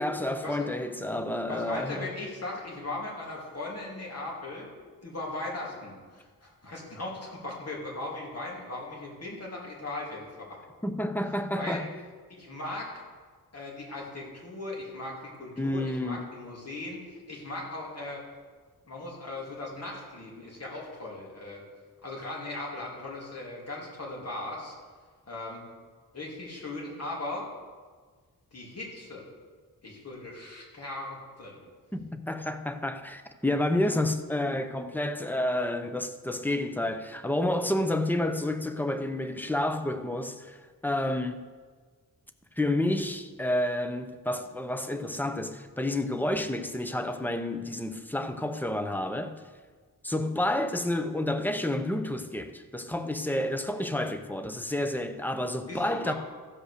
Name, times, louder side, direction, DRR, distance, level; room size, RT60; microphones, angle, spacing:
voice 1, 0.0-2.1 10.8-11.9 15.6-16.3 31.9-41.4 42.6-49.4 50.0-56.1, left 1 dB, 5° left, 0.6 m, -30 dB
voice 2, 1.5-4.7 5.0-10.6 11.5-11.8 12.3-13.0 13.5-18.2 18.9-21.6 22.0-24.7 25.3-25.7 26.1-27.4 28.5-29.2 29.8-31.6 55.7-56.1, left 2 dB, 45° left, 3.0 m, -38 dB
14.5 x 5.4 x 6.6 m
wide cardioid pair, 165°, 36 cm